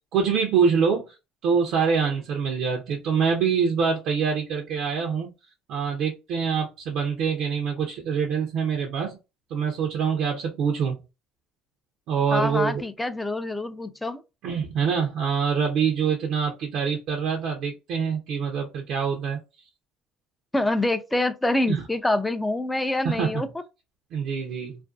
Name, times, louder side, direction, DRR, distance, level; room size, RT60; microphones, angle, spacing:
voice 1, 0.1-1.1 1.4-5.3 5.7-9.2 9.5-11.0 12.1-12.8 14.4-19.4 21.7-21.8 23.0-23.4 24.1-24.8, right 6 dB, 65° right, 0.5 m, -25 dB
voice 2, 12.3-14.2 20.5-23.5, left 2 dB, 10° left, 0.4 m, -26 dB
2.4 x 2.2 x 2.4 m
supercardioid pair, 90°, 0 cm